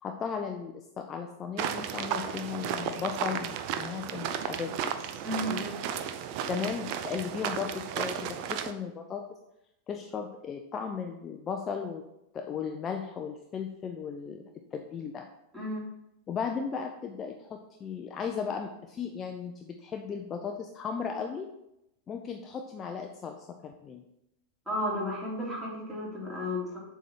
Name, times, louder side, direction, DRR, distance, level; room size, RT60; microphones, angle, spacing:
voice 1, 0.0-5.0 6.5-9.2 9.9-12.0 12.3-14.4 14.7-15.3 16.3-21.5 22.1-24.0, left 6 dB, 25° left, 4 dB, 0.5 m, -36 dB
sound 1, 1.6-8.7, right 8 dB, 45° right, 0.5 m, -34 dB
voice 2, 5.2-5.8 15.5-15.8 24.7-26.8, left 1 dB, 10° right, -5 dB, 2.7 m, -33 dB
7.3 x 3.5 x 5.9 m, 0.86 s
figure-of-eight pair, 90°, 0 cm